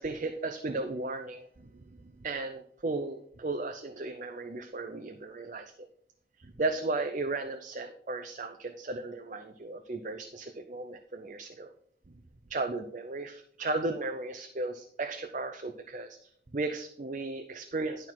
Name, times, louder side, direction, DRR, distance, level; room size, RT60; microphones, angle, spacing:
voice 1, 0.0-5.9 6.4-11.7 12.1-12.2 12.5-16.2 16.5-18.1, right 3 dB, 45° right, 6 dB, 0.5 m, -35 dB
11.0 x 4.6 x 5.7 m, 0.64 s
head